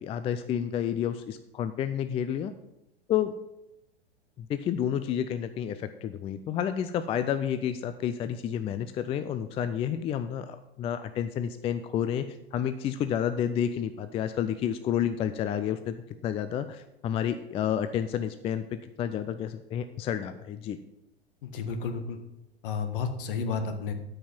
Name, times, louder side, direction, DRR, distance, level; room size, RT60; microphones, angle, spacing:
voice 1, 0.0-2.5 3.1-3.3 4.4-12.2 12.5-16.0 16.2-20.8, left 9 dB, 20° left, 11 dB, 0.4 m, -30 dB
voice 2, 21.4-22.2 22.6-23.9, left 5 dB, 55° left, 7 dB, 1.6 m, -31 dB
12.5 x 5.5 x 6.0 m, 0.87 s
figure-of-eight pair, 95°, 31 cm